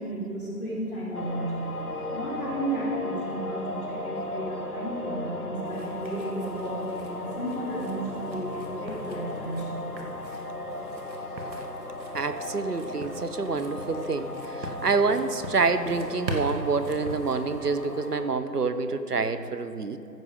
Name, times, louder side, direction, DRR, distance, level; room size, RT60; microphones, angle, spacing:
voice 1, 0.0-1.5 2.1-10.0, right 1 dB, 15° left, -13 dB, 2.7 m, -33 dB
sound 1, 1.1-18.3, left 2 dB, 60° left, 1.2 m, -36 dB
sound 2, 5.7-18.2, right 1 dB, 90° right, 1.9 m, -42 dB
voice 2, 12.1-20.0, right 4 dB, 65° right, 10 dB, 0.8 m, -27 dB
15.0 x 6.2 x 5.3 m, 2.8 s
figure-of-eight pair, 180°, 50 cm